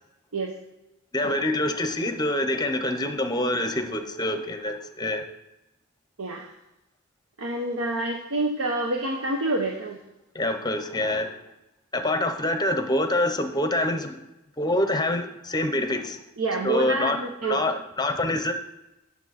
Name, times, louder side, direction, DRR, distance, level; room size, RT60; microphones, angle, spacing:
voice 1, 1.1-5.3 10.3-11.4 11.9-14.2 14.6-16.2 16.6-17.2 17.5-18.5, left 1 dB, 20° left, 6 dB, 0.8 m, -26 dB
voice 2, 7.4-10.0 16.4-17.6, right 2 dB, 75° right, 2 dB, 0.8 m, -27 dB
9.0 x 7.1 x 4.2 m, 0.94 s
head